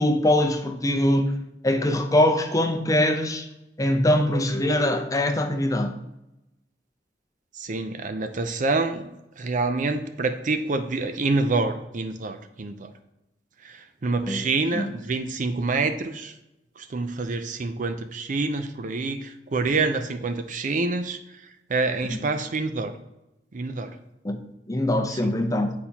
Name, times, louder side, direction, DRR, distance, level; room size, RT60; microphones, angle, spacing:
voice 1, 0.0-1.3 1.6-3.5 3.8-6.0 14.3-14.5 14.7-15.0 22.1-22.2 24.2-24.4 24.7-25.7, left 1 dB, 20° left, 0.6 m, -22 dB
voice 2, 7.5-9.1 9.4-12.9 13.6-16.3 16.8-21.2 21.7-22.9 23.5-23.9 25.1-25.3, right 3 dB, 50° right, 0.5 m, -27 dB
9.7 x 4.2 x 2.9 m
head